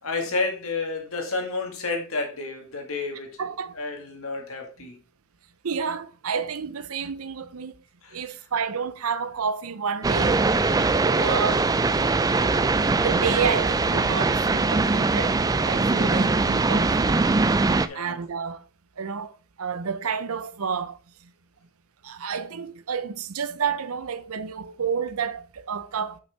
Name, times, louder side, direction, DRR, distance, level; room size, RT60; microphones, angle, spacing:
voice 1, 0.0-3.4 3.7-5.0 8.0-8.2 15.9-16.2 17.8-18.2, left 3 dB, 75° left, 2.1 m, -31 dB
voice 2, 3.4-3.8 5.6-7.8 8.1-10.4 11.2-11.8 12.9-17.2 17.9-18.6 19.0-21.0 22.0-26.2, right 6 dB, 85° right, 0.6 m, -30 dB
sound 1, 10.0-17.9, right 3 dB, 15° right, 0.3 m, -22 dB
6.1 x 5.8 x 4.4 m
head